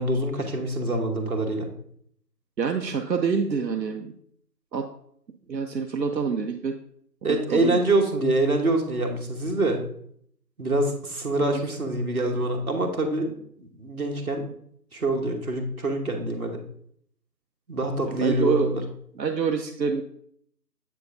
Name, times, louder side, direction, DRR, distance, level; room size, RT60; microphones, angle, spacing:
voice 1, 0.0-1.7 7.2-9.8 10.6-14.5 14.9-16.6 17.7-18.8, right 2 dB, 60° right, 2 dB, 1.2 m, -25 dB
voice 2, 2.6-4.1 4.7-4.9 5.5-6.7 7.2-7.8 18.2-18.7 19.2-20.0, right 5 dB, 85° right, 4 dB, 0.7 m, -26 dB
8.1 x 4.6 x 2.6 m, 0.66 s
figure-of-eight pair, 175°, 50 cm